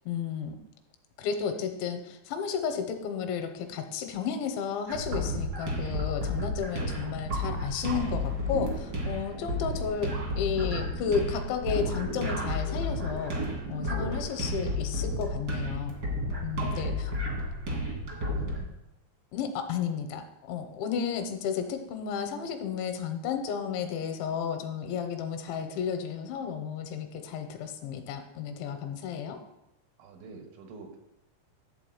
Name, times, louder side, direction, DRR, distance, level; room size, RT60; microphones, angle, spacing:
voice 1, 0.1-0.6 1.2-13.4 13.7-16.0 16.4-17.1 19.3-29.4, left 7 dB, 80° left, 6 dB, 3.1 m, -33 dB
sound 1, 4.9-18.7, left 1 dB, 70° right, 0.9 m, -32 dB
Car passing by / Truck, 7.7-13.3, right 1 dB, 40° right, 0.5 m, -48 dB
voice 2, 13.9-14.3 16.6-17.0 17.3-17.4 17.8-18.2 18.5-18.7 30.0-31.0, right 4 dB, 90° right, 4 dB, 3.9 m, -49 dB
11.5 x 4.0 x 7.8 m, 0.89 s
omnidirectional pair, 5.4 m